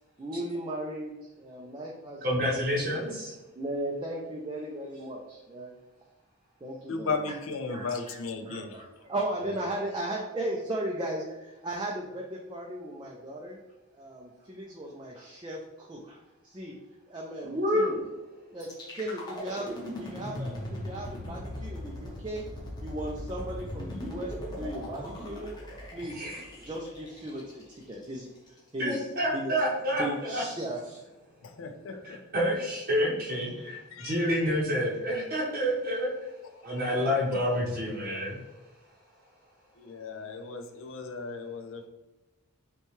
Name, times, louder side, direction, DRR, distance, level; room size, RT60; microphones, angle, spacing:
voice 1, 0.2-3.2 3.5-5.7 6.6-7.4 7.7-13.6 13.9-16.7 17.1-18.0 18.5-19.7 20.0-22.5 22.8-25.5 25.9-26.2 26.7-29.1 29.3-29.5 30.0-31.0 33.6-33.7, right 1 dB, 20° right, -2 dB, 0.4 m, -37 dB
voice 2, 2.2-3.3 17.4-18.0 26.1-26.4 28.8-30.4 32.0-36.3 36.6-38.4, equal, 40° right, -6 dB, 0.8 m, -28 dB
voice 3, 6.9-8.8 9.5-9.6 31.4-32.2 33.9-34.2 36.7-37.2 39.8-41.9, left 4 dB, 65° left, 6 dB, 0.5 m, -36 dB
sound 1, 18.6-28.6, left 1 dB, 20° left, 0.9 m, -39 dB
5.5 x 2.3 x 3.1 m, 1.1 s
head